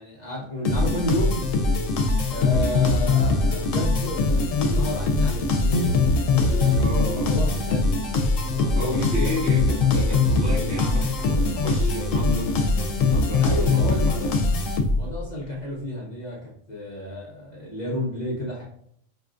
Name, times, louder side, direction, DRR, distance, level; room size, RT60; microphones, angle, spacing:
voice 1, 0.0-1.4 2.3-5.9 6.3-7.9 8.4-9.3 13.4-14.1 15.0-18.6, equal, 40° left, -5 dB, 0.8 m, -31 dB
sound 1, 0.6-15.2, left 3 dB, 85° left, 1.0 m, -22 dB
voice 2, 2.6-3.1 6.8-7.5 8.7-14.3, left 1 dB, 60° right, -4 dB, 1.3 m, -32 dB
5.4 x 2.3 x 2.4 m, 0.66 s
omnidirectional pair, 1.3 m